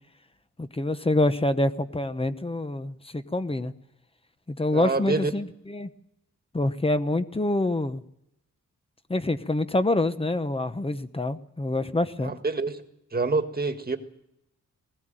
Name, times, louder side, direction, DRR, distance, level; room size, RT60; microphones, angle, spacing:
voice 1, 0.6-3.7 4.5-5.9 6.5-8.0 9.1-12.3, left 2 dB, 20° left, 11 dB, 1.1 m, -26 dB
voice 2, 4.7-5.3 12.2-12.8 13.1-14.0, right 3 dB, 30° right, 7 dB, 1.8 m, -26 dB
20.5 x 16.5 x 9.1 m, 0.82 s
wide cardioid pair, 135°, 31 cm